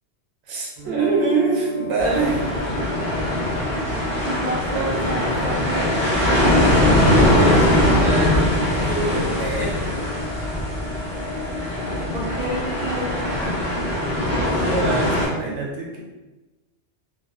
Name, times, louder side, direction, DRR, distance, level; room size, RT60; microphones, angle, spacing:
voice 1, 0.5-2.5 4.7-5.0 7.1-9.9 14.5-16.0, right 3 dB, 85° right, -2 dB, 0.9 m, -25 dB
sound 1, 0.8-6.9, left 2 dB, 35° left, 0.8 m, -38 dB
sound 2, 1.8-14.8, left 5 dB, 85° left, 1.0 m, -39 dB
sound 3, 2.0-15.3, left 1 dB, 15° right, 1.0 m, -21 dB
voice 2, 4.2-5.9 12.1-13.3, right 1 dB, 55° right, -6 dB, 0.5 m, -29 dB
2.5 x 2.2 x 2.3 m, 1.1 s
omnidirectional pair, 1.1 m